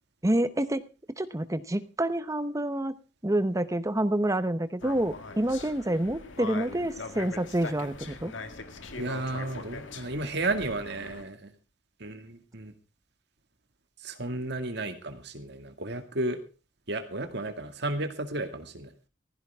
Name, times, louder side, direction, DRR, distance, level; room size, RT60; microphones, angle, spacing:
voice 1, 0.2-0.8 1.2-3.0 3.2-8.3, right 1 dB, 15° right, 12 dB, 0.9 m, -28 dB
sound 1, 4.8-11.2, left 3 dB, 85° left, 1.9 m, -41 dB
voice 2, 9.0-11.5 12.0-12.7 14.0-16.4 16.9-18.9, right 2 dB, 60° right, 7 dB, 2.2 m, -33 dB
16.0 x 15.5 x 3.6 m, 0.33 s
head